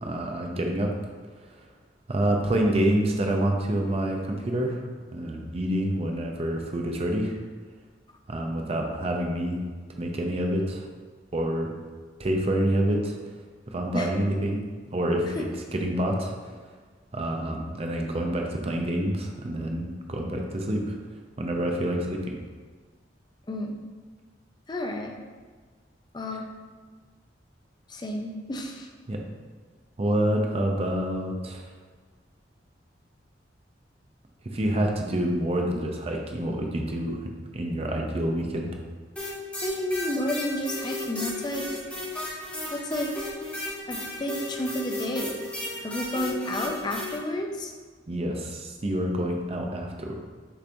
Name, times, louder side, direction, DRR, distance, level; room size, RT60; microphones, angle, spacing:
voice 1, 0.0-0.9 2.1-4.8 5.1-7.4 8.3-9.6 10.0-10.9 11.3-11.7 12.2-13.2 13.7-14.6 14.9-15.5 15.7-16.3 17.1-21.0 21.4-22.4 29.1-29.2 30.0-31.6 34.5-37.3 37.5-38.7 48.1-50.1, right 1 dB, 35° right, 2 dB, 0.5 m, -27 dB
voice 2, 23.5-23.8 24.7-25.1 26.1-26.5 27.9-28.9 39.6-41.7 42.7-43.3 43.9-45.4 45.8-47.7, left 1 dB, 25° left, 2 dB, 0.4 m, -31 dB
sound 1, 39.2-47.2, left 1 dB, 5° left, 1.0 m, -34 dB
6.7 x 3.0 x 2.6 m, 1.4 s
head